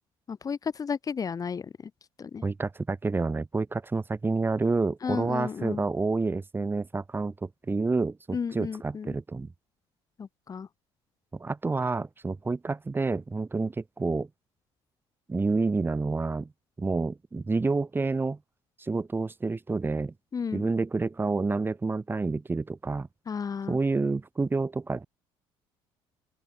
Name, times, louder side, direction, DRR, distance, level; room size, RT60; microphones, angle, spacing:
voice 1, 0.3-1.7 2.2-2.4 5.0-5.8 8.3-9.1 10.2-10.7 20.3-20.7 23.3-23.8, left 6 dB, 35° left, 3.4 m, -33 dB
voice 2, 2.4-9.5 11.3-14.3 15.3-16.5 16.8-18.4 18.8-20.1 20.5-23.1 23.7-25.1, right 3 dB, 20° right, 3.9 m, -29 dB
open air
cardioid pair, 100°, 11 cm